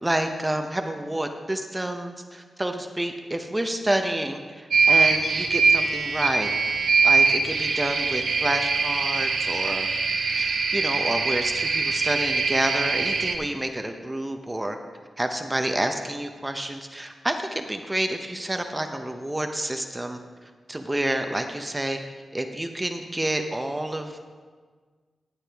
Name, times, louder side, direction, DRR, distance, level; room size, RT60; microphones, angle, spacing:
voice 1, 0.0-6.5 7.0-9.9 10.4-14.8 15.2-20.2 20.7-22.0 22.3-24.2, right 1 dB, 15° right, 5 dB, 0.7 m, -29 dB
sound 1, 4.7-13.3, right 4 dB, 80° right, 1.0 m, -23 dB
15.0 x 8.2 x 3.5 m, 1.5 s
cardioid pair, 65°, 0 cm